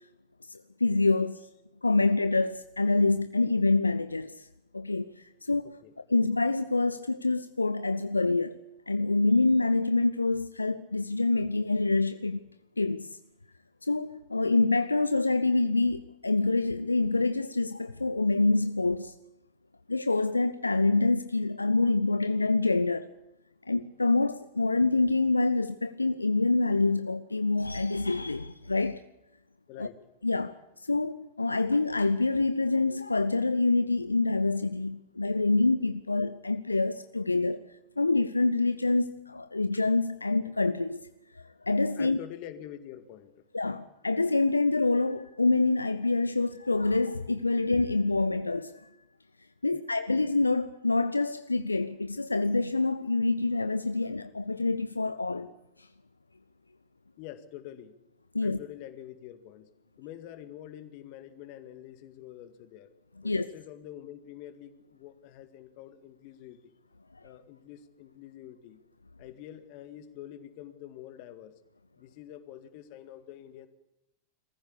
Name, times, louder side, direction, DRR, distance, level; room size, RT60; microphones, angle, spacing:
voice 1, 0.5-1.5 1.8-4.5 4.7-5.8 6.1-8.6 8.9-12.4 12.8-13.2 13.8-19.1 19.9-23.1 23.7-29.0 29.8-29.9 30.2-37.6 38.0-41.0 41.3-42.2 43.5-49.0 49.6-55.5 58.3-58.6 63.2-63.4, left 3 dB, 80° left, 0.7 m, -26 dB
voice 2, 29.7-30.0 41.9-43.4 49.7-49.8 57.2-57.9 58.4-59.7 60.0-62.9 63.2-66.7 67.2-68.8 69.2-71.6 72.0-73.7, left 11 dB, 45° left, 1.9 m, -46 dB
22.5 x 15.0 x 8.4 m
figure-of-eight pair, 90°, 0 cm